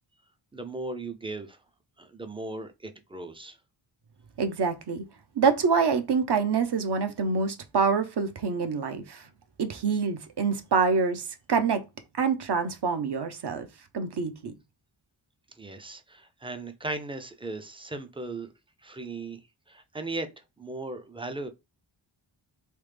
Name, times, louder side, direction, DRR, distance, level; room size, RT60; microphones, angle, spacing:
voice 1, 0.5-1.6 2.0-3.6 15.5-18.5 18.8-20.3 20.6-21.5, right 2 dB, 10° right, 0.4 m, -37 dB
voice 2, 4.4-5.0 5.3-9.3 9.6-11.8 12.2-13.7 13.9-14.5, right 5 dB, 55° right, 0.7 m, -26 dB
3.2 x 2.1 x 3.3 m
wide cardioid pair, 75°, 48 cm